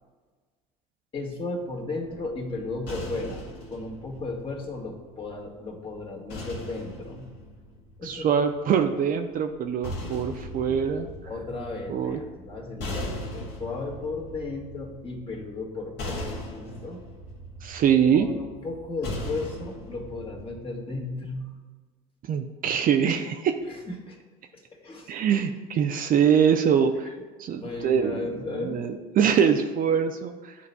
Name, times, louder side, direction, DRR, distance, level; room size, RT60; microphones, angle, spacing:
voice 1, 1.1-7.3 8.0-8.3 10.7-10.8 11.3-16.3 16.6-17.0 18.1-21.6 23.7-24.2 24.5-25.1 27.1-27.2 27.6-28.8, left 3 dB, 30° left, -1 dB, 1.8 m, -35 dB
sound 1, 2.1-5.4 6.3-8.6 9.5-20.6, left 1 dB, 60° left, 1.8 m, -39 dB
voice 2, 8.0-11.1 11.9-12.2 17.6-18.3 22.3-23.5 25.1-27.1 27.4-28.3 28.5-30.5, right 7 dB, 45° right, 6 dB, 0.5 m, -23 dB
11.0 x 4.0 x 2.2 m, 1.4 s
supercardioid pair, 80°, 19 cm